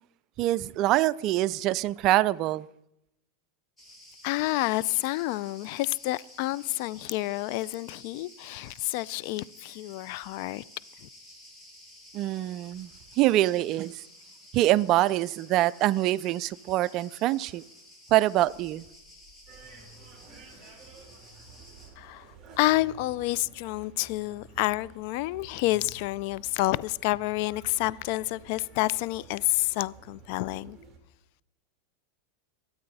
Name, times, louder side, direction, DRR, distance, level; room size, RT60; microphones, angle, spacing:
voice 1, 0.4-2.7 12.1-12.9 13.2-13.9 14.5-17.6 18.1-18.8, right 15 dB, 45° right, 0.4 m, -24 dB
Cricket, 3.8-21.9, left 1 dB, 10° left, 5.6 m, -52 dB
voice 2, 4.2-10.6 11.0-11.1 22.0-22.3 22.6-30.8, left 18 dB, 60° left, 0.4 m, -29 dB
sound 1, 19.5-31.0, right 4 dB, 25° right, 3.5 m, -51 dB
22.5 x 8.7 x 4.1 m
supercardioid pair, 120°, 0 cm